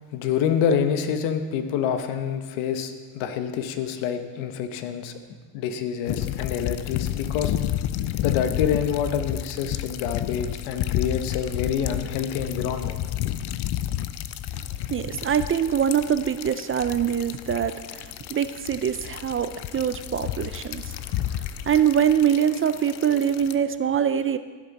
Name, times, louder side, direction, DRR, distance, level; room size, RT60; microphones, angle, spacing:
voice 1, 0.1-5.1 5.5-7.5 8.2-13.0, left 8 dB, 85° left, 8 dB, 1.1 m, -27 dB
sound 1, 6.1-23.5, left 12 dB, 60° left, 0.6 m, -31 dB
voice 2, 14.6-24.4, right 8 dB, 30° right, 12 dB, 0.4 m, -24 dB
16.0 x 7.4 x 4.1 m, 1.4 s
supercardioid pair, 90°, 47 cm